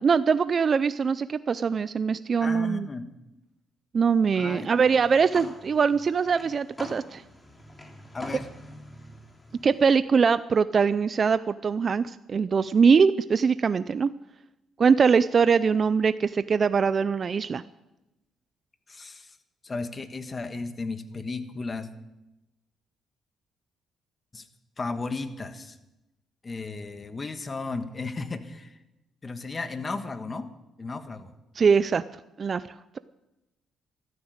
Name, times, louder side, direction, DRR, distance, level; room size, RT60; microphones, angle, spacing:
voice 1, 0.0-2.9 3.9-7.2 9.6-14.1 14.8-17.6 31.6-32.0 32.4-32.6, right 5 dB, 45° right, 14 dB, 0.4 m, -22 dB
voice 2, 2.4-3.1 4.3-4.7 8.1-8.5 18.9-19.4 19.6-21.9 24.3-24.5 24.8-25.7 26.4-28.7 29.2-30.5 30.8-31.3, left 3 dB, 30° left, 9 dB, 1.5 m, -34 dB
sound 1, 4.4-9.9, left 1 dB, 15° left, 3.4 m, -44 dB
14.5 x 13.0 x 6.5 m, 0.95 s
cardioid pair, 90°, 0 cm